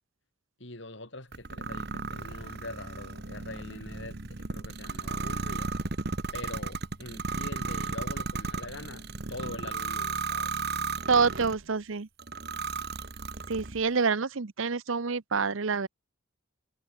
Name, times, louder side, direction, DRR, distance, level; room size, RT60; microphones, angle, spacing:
voice 1, 0.6-5.9 6.3-10.5, left 2 dB, 60° left, 4.6 m, -44 dB
sound 1, 1.3-11.6 12.2-13.8, right 4 dB, 50° right, 1.4 m, -35 dB
voice 2, 11.1-12.1 13.5-15.9, right 5 dB, 70° right, 0.8 m, -27 dB
head